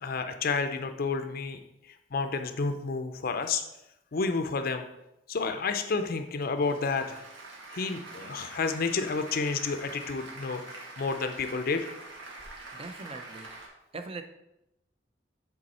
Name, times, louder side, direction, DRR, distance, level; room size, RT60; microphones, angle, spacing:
voice 1, 0.0-1.6 2.1-3.6 4.1-4.9 5.3-7.2 7.7-10.6 11.0-11.9, left 4 dB, 55° left, 8 dB, 0.5 m, -30 dB
Applause, 6.3-13.7, right 2 dB, 90° right, 1.7 m, -45 dB
voice 2, 12.7-13.5 13.9-14.2, right 3 dB, 30° right, 8 dB, 0.5 m, -40 dB
7.8 x 3.9 x 4.2 m, 0.87 s
head